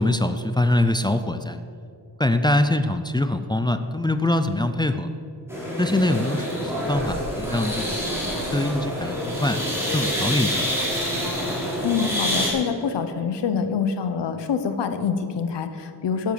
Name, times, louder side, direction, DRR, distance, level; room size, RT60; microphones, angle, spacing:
voice 1, 0.0-1.6 2.2-5.1 5.8-8.0 8.3-9.6 9.9-10.7, left 1 dB, 10° left, 8 dB, 0.5 m, -23 dB
sound 1, 5.5-12.5, equal, 5° right, 4.0 m, -27 dB
voice 2, 11.8-16.3, left 6 dB, 90° left, 9 dB, 1.1 m, -26 dB
15.5 x 8.1 x 6.9 m, 2.4 s
wide cardioid pair, 150°, 41 cm